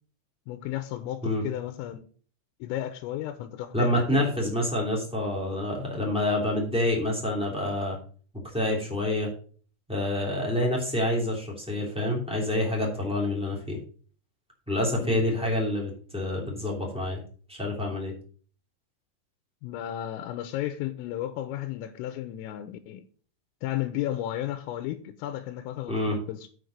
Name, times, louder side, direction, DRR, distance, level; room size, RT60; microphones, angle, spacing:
voice 1, 0.5-2.1 2.6-4.3 15.0-15.5 19.6-23.0 23.6-26.5, left 13 dB, 90° left, 3.3 m, -33 dB
voice 2, 3.7-8.0 8.5-9.3 9.9-13.8 14.7-17.2 17.5-18.1 25.9-26.2, left 1 dB, 5° right, 1.0 m, -27 dB
7.9 x 5.9 x 6.4 m
omnidirectional pair, 5.9 m